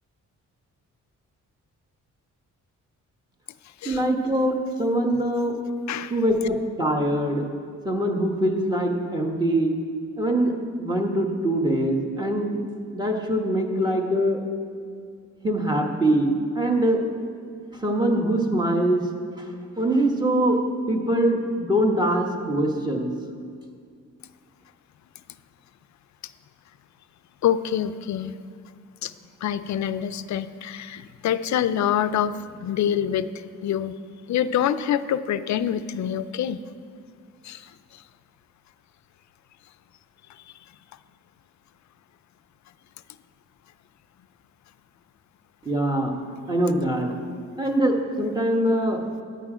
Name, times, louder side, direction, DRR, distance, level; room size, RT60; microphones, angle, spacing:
voice 1, 3.8-5.6 6.1-7.5 7.8-9.7 10.2-12.6 12.9-14.4 15.4-17.1 17.8-19.0 19.4-19.5 19.8-20.6 20.9-23.1 45.6-46.1 46.5-47.1 47.6-49.0, right 1 dB, 15° right, 1 dB, 1.2 m, -23 dB
voice 2, 27.4-28.4 29.0-29.1 29.4-34.0 34.3-36.6 37.4-38.0, left 9 dB, 65° left, 13 dB, 0.5 m, -26 dB
10.5 x 8.3 x 5.0 m, 2.2 s
wide cardioid pair, 125°, 31 cm